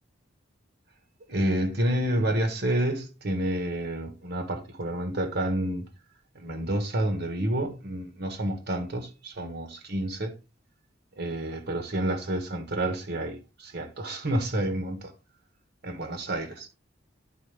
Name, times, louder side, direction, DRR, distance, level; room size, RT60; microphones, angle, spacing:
voice 1, 1.3-5.9 6.3-10.3 11.2-15.1 15.8-16.7, right 1 dB, 55° right, 1.3 m, -29 dB
10.5 x 4.5 x 3.3 m
head